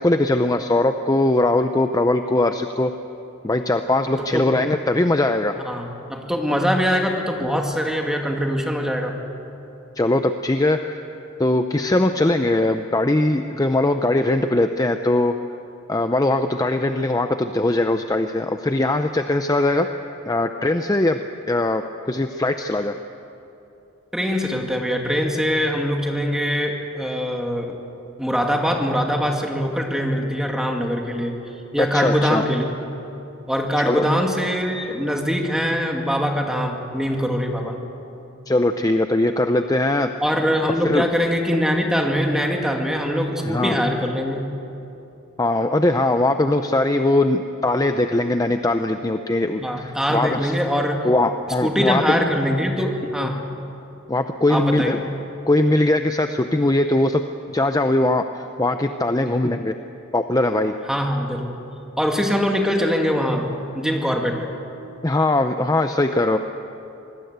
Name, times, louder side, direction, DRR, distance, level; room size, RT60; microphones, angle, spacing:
voice 1, 0.0-2.9 3.4-5.6 10.0-11.0 11.4-15.3 15.9-19.9 20.3-21.2 21.5-22.9 31.9-32.4 33.8-34.1 38.5-40.1 40.8-41.1 43.4-43.7 45.4-50.5 51.0-52.2 53.2-53.3 54.1-55.0 55.5-57.2 57.5-59.7 60.1-60.7 65.0-66.4, left 2 dB, 15° left, 7 dB, 0.6 m, -20 dB
voice 2, 4.2-4.5 5.7-9.2 24.1-27.7 28.2-31.4 31.7-32.7 33.5-37.8 40.2-44.4 49.6-51.1 51.6-53.5 54.5-55.1 60.9-61.6 62.0-64.4, equal, 5° right, 1 dB, 2.2 m, -23 dB
25.5 x 19.5 x 8.1 m, 2.9 s
head